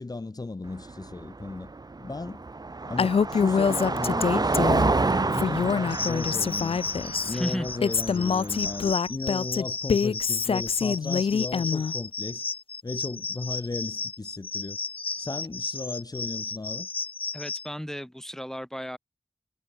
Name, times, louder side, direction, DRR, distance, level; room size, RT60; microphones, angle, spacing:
voice 1, 0.0-1.7 2.0-2.4 2.8-6.8 7.2-12.4 12.8-14.8 15.2-16.9, left 3 dB, 40° left, 0.8 m, -35 dB
Car passing by, 0.7-8.9, right 3 dB, 45° right, 0.7 m, -29 dB
Female speech woman speaking, 3.0-4.9 5.3-7.3 7.8-11.9, left 6 dB, 85° left, 0.4 m, -25 dB
sound 1, 5.9-17.7, left 4 dB, 70° left, 0.9 m, -34 dB
voice 2, 7.3-7.7 17.3-19.0, equal, 5° left, 2.4 m, -33 dB
wide cardioid pair, 65°, 10 cm